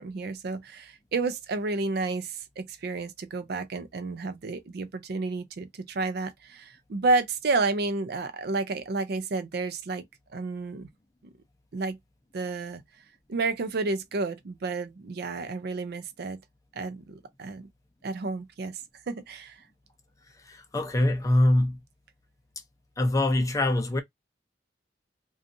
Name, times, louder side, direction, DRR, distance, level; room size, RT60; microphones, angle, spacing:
voice 1, 0.0-10.0 10.3-10.9 11.7-12.0 12.3-12.8 13.3-16.4 16.8-17.7 18.0-18.8 19.1-19.6, right 3 dB, 60° right, 0.4 m, -31 dB
voice 2, 20.5-21.8 23.0-24.0, left 1 dB, 20° left, 0.5 m, -23 dB
2.6 x 2.3 x 2.5 m
head